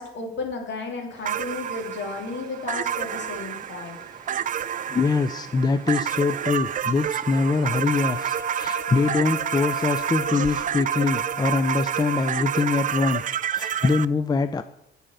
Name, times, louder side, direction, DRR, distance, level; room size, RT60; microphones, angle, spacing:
voice 1, 0.0-4.0, left 3 dB, 65° left, 1 dB, 2.7 m, -33 dB
sound 1, 1.1-8.2, right 2 dB, 20° right, 2.9 m, -50 dB
sound 2, 1.2-14.1, right 9 dB, 40° right, 0.4 m, -29 dB
voice 2, 4.9-14.6, left 4 dB, 20° left, 10 dB, 0.5 m, -24 dB
Wind instrument woodwind instrument, 7.8-13.1, left 3 dB, 80° left, 1.6 m, -39 dB
10.0 x 5.5 x 7.9 m, 0.81 s
cardioid pair, 90°, 20 cm